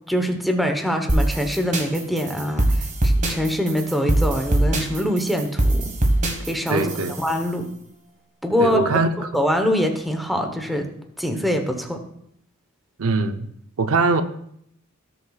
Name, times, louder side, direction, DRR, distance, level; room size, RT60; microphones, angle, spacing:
voice 1, 0.1-5.9 6.5-6.9 7.2-7.7 8.4-8.8 9.3-10.9 11.2-12.0, equal, ahead, 4 dB, 1.0 m, -24 dB
sound 1, 1.1-7.4, right 1 dB, 35° right, 1.5 m, -22 dB
voice 2, 6.7-7.2 8.6-9.3 13.0-13.5 13.8-14.2, right 3 dB, 75° right, 9 dB, 0.6 m, -21 dB
17.5 x 6.8 x 2.4 m, 0.72 s
head